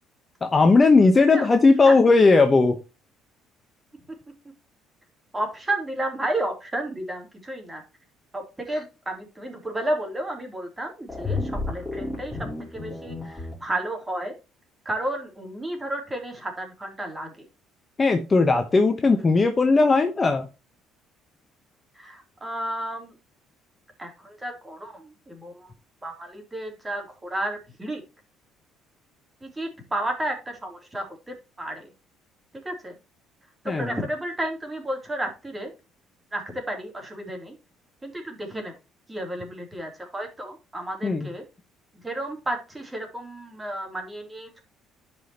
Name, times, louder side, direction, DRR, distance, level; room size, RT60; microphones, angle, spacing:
voice 1, 0.4-2.8 18.0-20.5 33.7-33.9 41.0-41.3, left 3 dB, 25° left, 1.0 m, -18 dB
voice 2, 1.8-2.2 5.3-7.8 8.3-14.3 14.8-17.4 21.9-23.1 24.0-25.7 26.0-28.0 29.4-31.9 32.6-32.9 33.6-35.7 36.3-37.6 38.0-38.7 39.1-41.4 42.0-44.6, right 1 dB, 15° right, 3.1 m, -32 dB
sound 1, 11.1-13.5, left 3 dB, 5° left, 4.1 m, -31 dB
12.0 x 5.3 x 3.0 m
cardioid pair, 120°, 0 cm